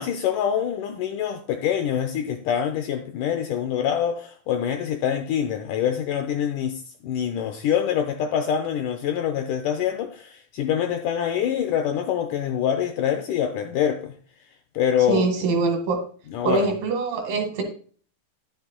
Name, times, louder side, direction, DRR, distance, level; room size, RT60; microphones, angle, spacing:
voice 1, 0.0-14.1 14.8-15.2 16.3-16.6, left 9 dB, 80° left, 1.9 m, -25 dB
voice 2, 15.1-16.0 16.4-17.6, right 3 dB, 70° right, 3.4 m, -23 dB
10.5 x 9.2 x 2.2 m
omnidirectional pair, 4.3 m